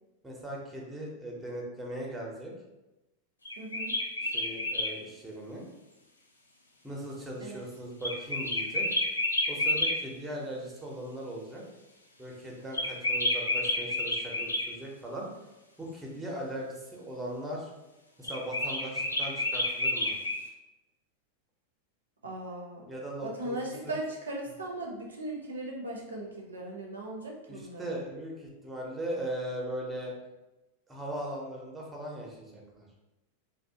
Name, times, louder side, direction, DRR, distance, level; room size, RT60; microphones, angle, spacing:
voice 1, 0.2-2.5 4.2-5.7 6.8-8.9 9.5-11.6 12.2-15.3 15.8-17.7 18.2-20.1 22.9-23.9 27.5-30.1 30.9-32.9, right 1 dB, 10° right, -2 dB, 0.6 m, -39 dB
sound 1, 3.4-4.9 8.0-10.0 12.7-14.7 18.2-20.4, left 1 dB, 80° left, 0.3 m, -29 dB
voice 2, 3.6-3.9 7.4-7.6 22.2-22.9 23.2-28.0, right 1 dB, 70° right, -1 dB, 0.5 m, -38 dB
2.6 x 2.1 x 2.6 m, 1.0 s
figure-of-eight pair, 90°, 0 cm